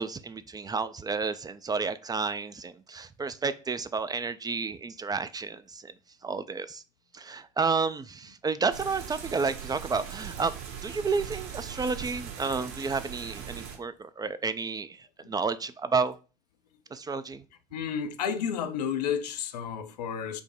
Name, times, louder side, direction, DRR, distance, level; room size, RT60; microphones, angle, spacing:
voice 1, 0.0-5.9 6.2-6.8 7.1-10.5 10.8-16.1 16.9-17.4, right 4 dB, 20° right, 0.4 m, -31 dB
sound 1, 8.7-13.8, right 8 dB, 70° right, 1.8 m, -40 dB
voice 2, 17.7-20.4, left 7 dB, 75° left, 0.5 m, -31 dB
5.1 x 2.1 x 4.8 m
figure-of-eight pair, 55°, 21 cm